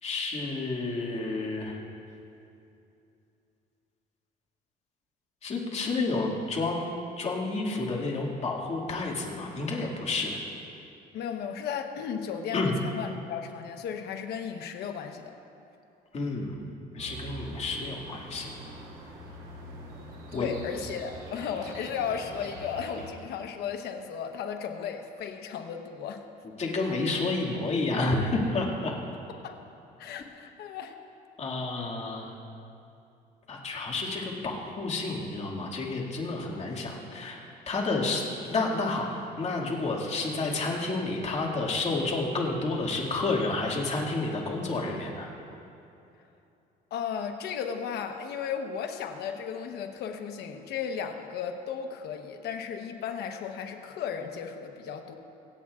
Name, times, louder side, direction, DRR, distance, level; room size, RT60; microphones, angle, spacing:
voice 1, 0.0-1.8 5.4-10.4 12.5-12.7 16.1-16.6 16.9-18.5 20.3-20.5 26.6-28.9 31.4-32.3 33.5-45.3, left 3 dB, 40° left, -2 dB, 2.2 m, -30 dB
voice 2, 11.1-15.3 20.3-26.2 29.4-29.6 30.0-30.9 46.9-55.1, left 7 dB, 70° left, 5 dB, 1.0 m, -35 dB
sound 1, 17.0-23.1, right 2 dB, 80° right, 3.2 m, -44 dB
25.5 x 8.6 x 2.5 m, 2.8 s
cardioid pair, 110°, 17 cm